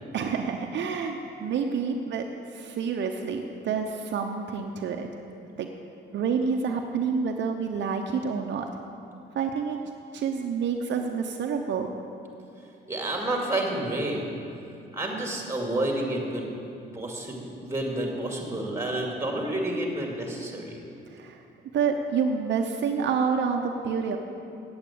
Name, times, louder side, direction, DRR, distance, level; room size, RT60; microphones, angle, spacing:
voice 1, 0.1-5.1 5.6-5.7 6.1-8.7 9.3-9.8 10.1-11.9 21.1-21.4 21.7-24.2, right 6 dB, 65° right, 3 dB, 0.8 m, -28 dB
voice 2, 12.9-14.3 14.9-16.5 16.9-20.8, right 1 dB, 15° right, 0 dB, 2.5 m, -29 dB
8.7 x 8.5 x 8.4 m, 2.7 s
cardioid pair, 90°, 20 cm